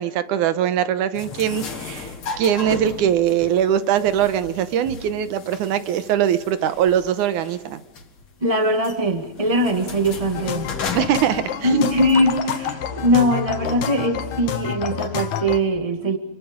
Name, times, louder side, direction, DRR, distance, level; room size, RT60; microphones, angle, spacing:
voice 1, 0.0-2.1 2.4-7.8 10.9-11.7, right 10 dB, 85° right, 11 dB, 2.4 m, -21 dB
sound 1, 1.1-12.3, left 4 dB, 45° left, 2.7 m, -36 dB
voice 2, 8.4-10.7 11.6-16.2, equal, 20° right, 6 dB, 1.1 m, -21 dB
sound 2, 10.3-15.6, left 9 dB, 70° left, 2.6 m, -28 dB
28.0 x 22.5 x 5.2 m, 1.1 s
omnidirectional pair, 3.5 m